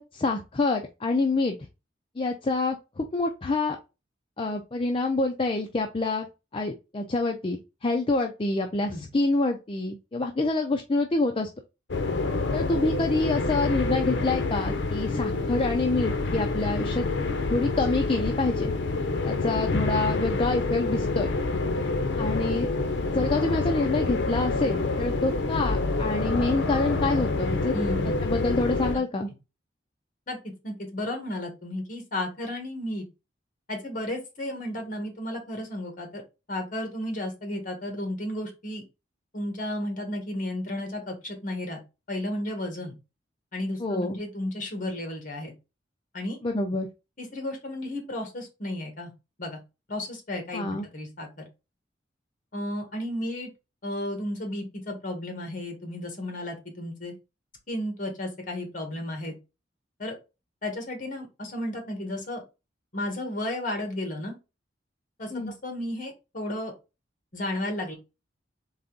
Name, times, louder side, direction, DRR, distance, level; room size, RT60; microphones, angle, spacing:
voice 1, 0.0-1.6 2.2-3.8 4.4-6.3 6.5-11.5 12.5-17.1 17.5-18.7 19.2-21.3 22.2-22.7 23.1-27.8 28.1-29.3 43.8-44.2 46.4-46.9 50.5-50.9 65.3-65.5, left 2 dB, 30° left, 4 dB, 0.5 m, -27 dB
sound 1, 11.9-29.0, left 3 dB, 75° left, 0.6 m, -27 dB
voice 2, 27.7-28.2 30.3-30.4 30.6-33.1 33.7-36.2 36.5-38.8 39.3-41.8 42.1-43.0 43.5-45.5 46.1-46.4 47.2-49.1 49.4-49.6 49.9-51.3 52.5-53.5 53.8-57.1 57.7-59.4 60.0-60.2 60.6-62.4 62.9-64.4 65.2-66.7 67.3-67.9, left 1 dB, 50° left, 4 dB, 1.6 m, -33 dB
4.1 x 3.4 x 3.8 m, 0.27 s
head